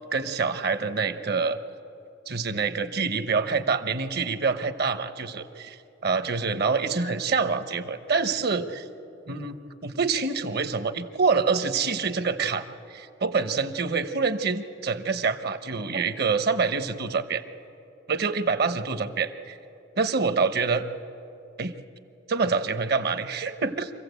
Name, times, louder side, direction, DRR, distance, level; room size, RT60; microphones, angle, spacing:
voice 1, 0.1-1.6 2.3-5.8 6.0-8.8 9.3-9.6 9.8-17.4 18.1-19.6 20.0-20.8 21.6-21.7 22.3-23.9, right 4 dB, 55° right, 10 dB, 1.0 m, -26 dB
26.0 x 15.5 x 8.2 m, 2.7 s
head